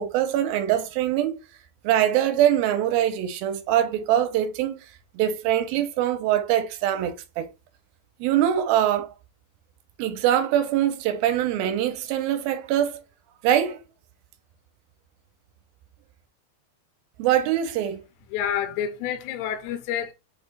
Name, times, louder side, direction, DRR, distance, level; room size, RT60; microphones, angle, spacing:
voice 1, 0.0-1.4 1.8-4.8 5.1-7.5 8.2-9.1 10.0-13.0 13.4-13.8 17.2-18.0, right 11 dB, 80° right, 2.3 m, -23 dB
voice 2, 18.3-20.1, left 9 dB, 85° left, 2.8 m, -28 dB
6.4 x 2.5 x 3.2 m
omnidirectional pair, 4.5 m